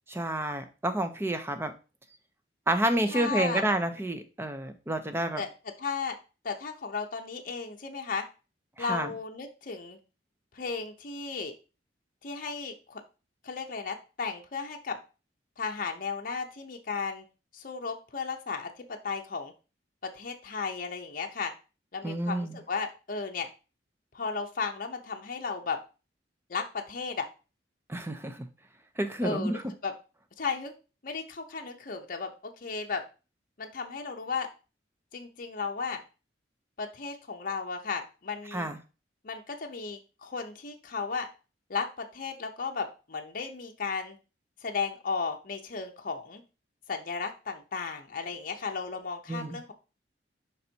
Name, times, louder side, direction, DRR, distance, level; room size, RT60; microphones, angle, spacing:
voice 1, 0.1-1.7 2.7-5.4 8.8-9.1 22.0-22.6 27.9-28.5 29.0-29.6 38.5-38.8 49.3-49.6, right 1 dB, 15° right, 8 dB, 0.6 m, -29 dB
voice 2, 3.1-3.6 5.4-5.5 5.8-6.2 6.4-8.2 8.8-10.0 10.5-11.5 12.2-13.0 13.4-15.0 15.6-17.2 17.5-19.5 20.1-21.5 21.9-23.5 24.1-25.8 26.5-27.3 29.2-29.9 30.4-30.7 31.0-33.0 33.6-34.5 35.1-36.0 36.8-38.7 39.2-41.3 41.7-44.2 44.6-46.4 46.9-49.7, left 5 dB, 50° left, 3 dB, 0.7 m, -34 dB
5.4 x 4.1 x 4.4 m, 0.32 s
head